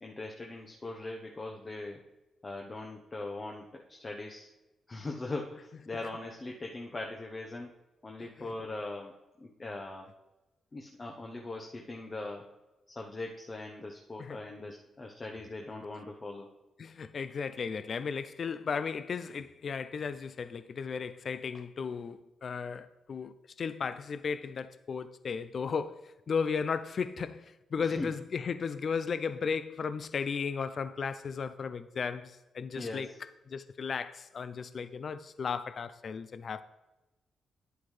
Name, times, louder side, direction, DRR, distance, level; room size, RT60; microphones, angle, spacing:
voice 1, 0.0-2.0 2.4-4.5 4.9-7.7 8.0-10.1 10.7-12.5 12.9-16.5 27.8-28.1 32.8-33.2, left 2 dB, 30° left, 0.9 m, -40 dB
voice 2, 16.8-33.1 33.5-36.6, left 5 dB, 55° left, 0.4 m, -35 dB
10.0 x 7.9 x 3.2 m
cardioid pair, 70°, 0 cm